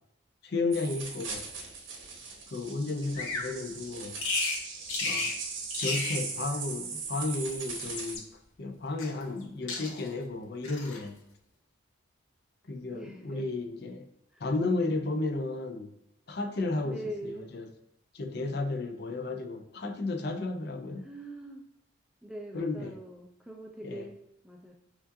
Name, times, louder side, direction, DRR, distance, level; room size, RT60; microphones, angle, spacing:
voice 1, 0.4-1.4 2.5-4.2 5.0-5.3 5.8-8.3 8.6-11.2 12.6-14.0 14.4-15.9 16.3-17.7 18.1-21.0 22.5-23.0 23.8-24.1, left 3 dB, 50° left, 5 dB, 0.5 m, -33 dB
sound 1, 0.7-8.1, right 5 dB, 65° right, 1.0 m, -39 dB
Bird vocalization bird call bird song, 3.1-3.5 4.2-4.6 4.9-5.4 5.7-6.2 7.2-8.2 9.0-9.4 9.7-10.2 10.6-11.0, left 3 dB, 70° left, 0.9 m, -33 dB
voice 2, 12.9-13.5 14.3-14.6 16.8-17.5 21.0-21.6 22.2-24.7, right 1 dB, 5° right, 0 dB, 0.4 m, -43 dB
7.6 x 2.5 x 2.6 m, 0.80 s
head